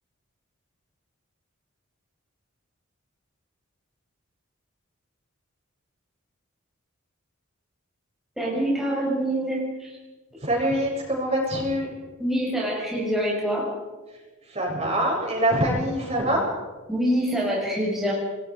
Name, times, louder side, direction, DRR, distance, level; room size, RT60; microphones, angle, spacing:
voice 1, 8.4-10.0 12.2-13.7 16.9-18.1, equal, ahead, -5 dB, 6.4 m, -25 dB
voice 2, 10.4-11.9 14.5-16.5, right 1 dB, 30° right, -1 dB, 8.0 m, -24 dB
30.0 x 21.5 x 5.3 m, 1.2 s
head